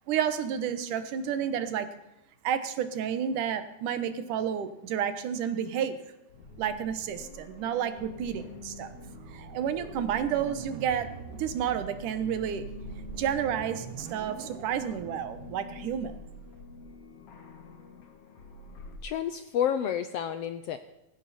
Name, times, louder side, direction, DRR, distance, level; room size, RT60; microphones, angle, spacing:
voice 1, 0.1-1.9 2.4-6.0 6.6-8.9 9.3-12.6 13.2-16.1, right 8 dB, 90° right, 11 dB, 2.8 m, -30 dB
sound 1, 6.3-19.0, left 4 dB, 55° left, 2.7 m, -47 dB
sound 2, 8.0-15.6, right 8 dB, 65° right, 1.8 m, -44 dB
voice 2, 19.0-20.8, left 9 dB, 75° left, 11 dB, 1.4 m, -30 dB
17.0 x 15.5 x 4.3 m, 0.93 s
omnidirectional pair, 3.5 m